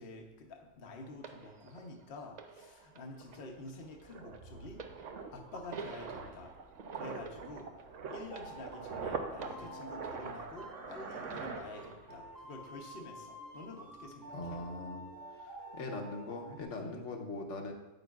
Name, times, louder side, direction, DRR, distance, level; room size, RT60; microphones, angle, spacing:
voice 1, 0.0-4.8 5.3-6.5 6.9-7.7 8.1-14.6 16.8-17.0, left 2 dB, 55° left, 2 dB, 0.9 m, -48 dB
sound 1, 1.2-10.9 11.3-12.3 13.1-13.2, right 4 dB, 55° right, 0.5 m, -51 dB
sound 2, 2.8-2.9 3.2-12.3 12.5-12.8, right 5 dB, 75° right, 1.1 m, -44 dB
sound 3, 8.1-16.6, right 1 dB, 20° right, 0.9 m, -50 dB
voice 2, 14.3-15.1 15.4-17.7, left 2 dB, 70° left, 2 dB, 1.2 m, -41 dB
8.9 x 8.2 x 2.3 m, 1.1 s
omnidirectional pair, 1.3 m